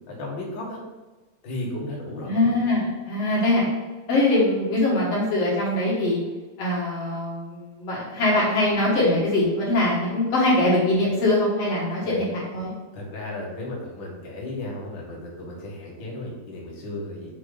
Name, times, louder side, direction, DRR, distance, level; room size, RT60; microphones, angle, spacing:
voice 1, 0.1-0.8 1.4-2.5 12.0-12.2 12.9-17.3, left 1 dB, 80° left, -4 dB, 1.0 m, -34 dB
voice 2, 2.2-3.7 4.1-6.2 6.6-12.7, left 1 dB, 65° left, -5 dB, 1.5 m, -22 dB
7.3 x 4.1 x 5.0 m, 1.2 s
omnidirectional pair, 5.0 m